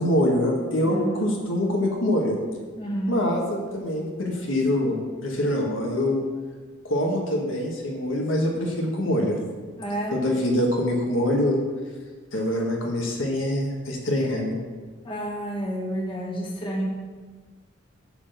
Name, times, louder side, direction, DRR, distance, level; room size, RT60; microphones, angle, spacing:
voice 1, 0.0-2.4 3.1-5.0 5.2-6.2 6.8-9.4 10.1-11.6 12.3-14.5, left 1 dB, 75° left, 0 dB, 1.6 m, -24 dB
voice 2, 0.8-1.2 2.8-3.2 9.8-10.2 15.0-16.9, right 1 dB, 25° left, -3 dB, 1.7 m, -29 dB
11.0 x 4.0 x 6.8 m, 1.4 s
head